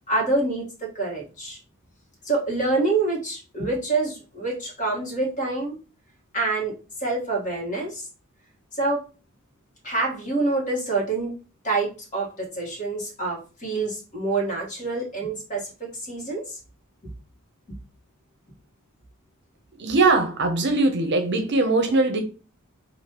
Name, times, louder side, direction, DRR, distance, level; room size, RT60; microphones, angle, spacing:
voice 1, 0.1-1.6 2.2-5.8 6.3-6.7 7.0-8.1 8.7-9.0 9.8-11.3 11.6-16.6, right 3 dB, 35° left, 1.5 m, -26 dB
voice 2, 19.8-22.2, right 3 dB, 55° right, 0.7 m, -21 dB
5.0 x 2.6 x 2.9 m
head